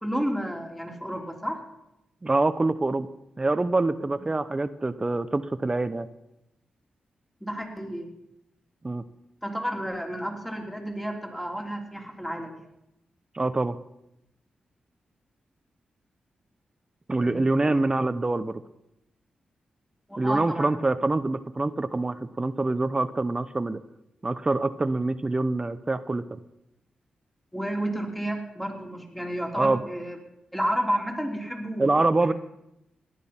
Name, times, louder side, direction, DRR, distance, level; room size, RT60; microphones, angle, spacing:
voice 1, 0.0-1.6 4.2-4.3 7.4-8.1 9.4-12.6 17.2-17.8 20.1-20.7 27.5-30.2 30.5-32.0, equal, 5° left, 2 dB, 3.2 m, -31 dB
voice 2, 2.2-3.1 3.4-6.1 8.8-9.0 13.3-13.8 17.1-18.6 20.2-23.8 24.2-26.2 29.6-29.8 31.8-32.3, right 2 dB, 25° right, 13 dB, 0.8 m, -25 dB
17.5 x 11.0 x 5.8 m, 0.85 s
cardioid pair, 65°, 3 cm